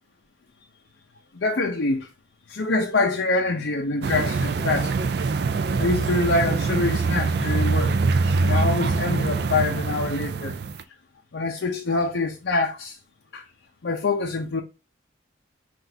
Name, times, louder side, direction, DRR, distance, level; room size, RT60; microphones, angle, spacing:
voice 1, 1.3-2.1 2.5-5.0 5.8-8.0 8.4-10.5 11.3-13.0 13.3-13.4 13.8-14.6, left 3 dB, 75° left, 0.6 m, -25 dB
sound 1, 4.0-10.8, right 4 dB, 60° right, 0.4 m, -24 dB
6.0 x 2.5 x 2.6 m
head